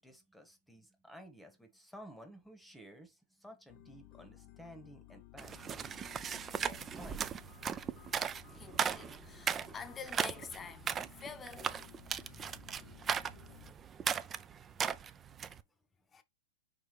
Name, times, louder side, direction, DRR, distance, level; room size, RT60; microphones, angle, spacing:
voice 1, 0.0-5.9 6.3-7.4 12.3-12.4 12.9-13.0 13.4-13.5 14.0-14.1 15.1-15.2, equal, 5° left, 1.1 m, -55 dB
sound 1, 3.7-13.7, left 13 dB, 50° left, 0.6 m, -57 dB
sound 2, 5.4-15.6, right 7 dB, 25° right, 0.4 m, -37 dB
voice 2, 8.5-12.4 16.1-16.2, left 5 dB, 20° left, 0.8 m, -48 dB
5.0 x 3.4 x 3.1 m
hypercardioid pair, 120°, 0 cm